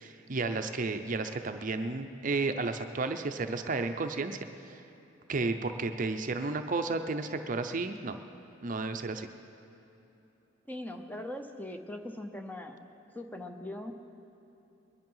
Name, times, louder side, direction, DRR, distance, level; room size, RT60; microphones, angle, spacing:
voice 1, 0.0-4.4 4.7-4.8 5.3-8.2 8.6-9.3, right 3 dB, 40° right, 7 dB, 0.6 m, -32 dB
voice 2, 10.7-12.8 13.1-14.0, left 1 dB, 10° left, 5 dB, 0.7 m, -40 dB
21.5 x 10.5 x 5.6 m, 3.0 s
head